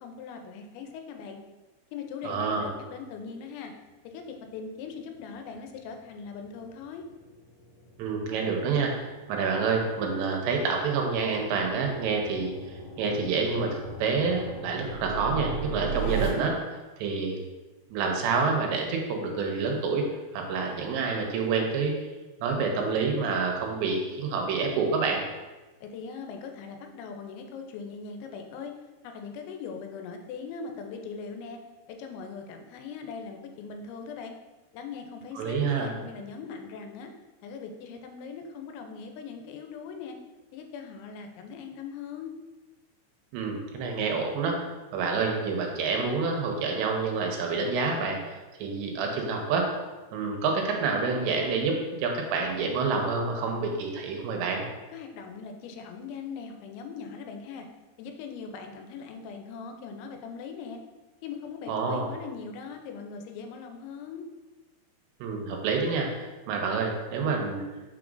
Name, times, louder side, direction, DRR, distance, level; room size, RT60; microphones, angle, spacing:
voice 1, 0.0-1.4 1.9-3.7 4.0-7.0 25.8-28.7 29.0-31.6 31.9-34.3 34.7-37.1 37.4-40.2 40.5-42.3 54.9-57.7 58.0-60.8 61.2-64.3, left 5 dB, 90° left, 4 dB, 3.0 m, -40 dB
voice 2, 2.2-2.7 8.0-17.4 17.9-20.0 20.3-22.0 22.4-25.2 35.4-35.9 43.3-49.7 50.1-54.7 61.7-62.1 65.2-67.6, right 4 dB, 90° right, 1 dB, 3.0 m, -28 dB
sound 1, 5.1-16.3, right 4 dB, 60° left, 3.4 m, -38 dB
6.5 x 6.0 x 2.5 m, 1.2 s
omnidirectional pair, 5.1 m